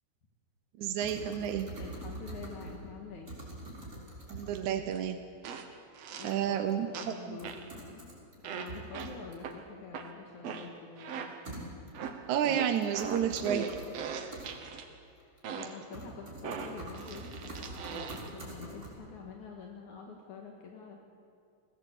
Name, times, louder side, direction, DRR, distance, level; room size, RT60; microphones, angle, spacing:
voice 1, 0.8-1.7 4.3-5.3 6.2-7.4 12.3-13.8, right 9 dB, 75° right, 7 dB, 2.2 m, -31 dB
sound 1, 1.0-2.9 3.3-4.8 6.3-6.4 6.7-6.8 7.4-8.3 8.7-9.5 11.4-12.1 12.7-13.9 14.3-14.5 15.2-15.6 15.9-18.9, right 2 dB, 25° right, 6.3 m, -44 dB
voice 2, 1.8-3.4 6.1-8.2 8.5-11.3 15.2-21.0, left 5 dB, 75° left, 1 dB, 3.1 m, -47 dB
sound 2, 4.9-5.0 5.4-6.5 6.9-7.7 8.4-11.6 11.9-14.9 15.4-15.9 16.4-18.4, right 6 dB, 60° right, 2.2 m, -41 dB
21.0 x 17.0 x 8.4 m, 2.5 s
omnidirectional pair, 3.5 m